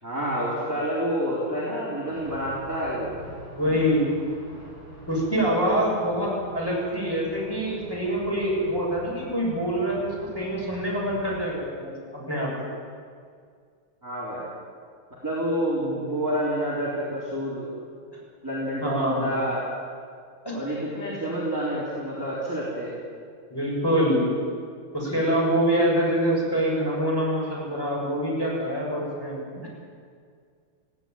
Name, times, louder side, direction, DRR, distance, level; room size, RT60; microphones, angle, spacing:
voice 1, 0.0-3.1 14.0-14.4 15.2-17.7 18.4-19.6 20.5-22.9, equal, 10° right, -8 dB, 4.3 m, -28 dB
sound 1, 2.1-11.4, equal, 60° left, 6.8 m, -45 dB
voice 2, 3.6-4.1 5.1-12.5 18.8-19.3 20.4-20.6 23.5-24.3 24.9-29.7, equal, 10° left, -4 dB, 6.8 m, -25 dB
19.0 x 16.5 x 9.3 m, 2.1 s
omnidirectional pair, 2.4 m